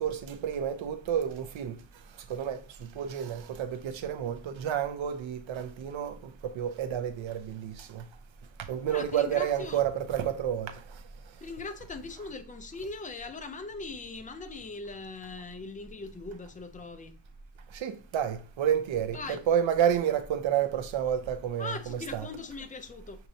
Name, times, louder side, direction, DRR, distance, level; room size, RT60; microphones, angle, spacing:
voice 1, 0.0-1.8 2.3-6.1 6.4-8.0 8.7-10.8 17.7-22.3, right 9 dB, 75° right, 0.8 m, -30 dB
voice 2, 8.9-9.8 11.4-17.1 19.1-19.4 21.6-23.3, left 3 dB, 20° left, 0.5 m, -40 dB
6.6 x 2.9 x 2.7 m
wide cardioid pair, 150°, 47 cm